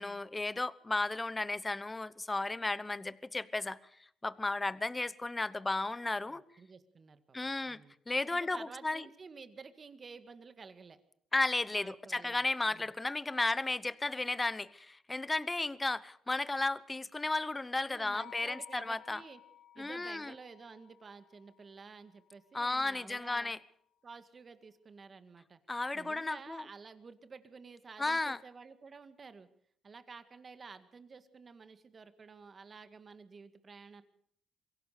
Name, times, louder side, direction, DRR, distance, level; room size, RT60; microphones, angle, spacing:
voice 1, 0.0-3.8 4.2-6.4 7.3-7.8 8.1-9.0 11.3-19.2 19.8-20.3 22.5-23.6 25.7-26.6 28.0-28.4, left 2 dB, 20° left, 0.9 m, -34 dB
voice 2, 6.3-7.4 7.7-7.9 8.3-11.0 11.7-12.9 17.9-19.4 19.7-23.5 24.0-25.6 25.9-29.5 29.8-34.0, right 5 dB, 40° right, 2.0 m, -52 dB
sound 1, 18.1-22.3, left 12 dB, 65° left, 2.3 m, -56 dB
23.0 x 16.5 x 6.7 m
cardioid pair, 90°, 0 cm